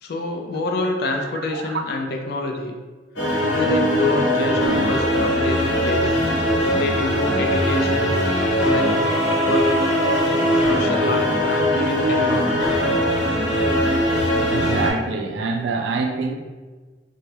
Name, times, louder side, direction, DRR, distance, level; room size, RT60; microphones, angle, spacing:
voice 1, 0.0-2.7 3.4-6.2 6.8-8.2 8.7-9.2 9.4-9.9 10.5-12.7, left 2 dB, 55° left, 3 dB, 0.4 m, -27 dB
voice 2, 1.5-1.8 14.5-16.3, right 4 dB, 75° right, 4 dB, 0.4 m, -25 dB
sound 1, 3.2-14.9, equal, 80° left, 1.0 m, -20 dB
2.7 x 2.3 x 3.1 m, 1.4 s
head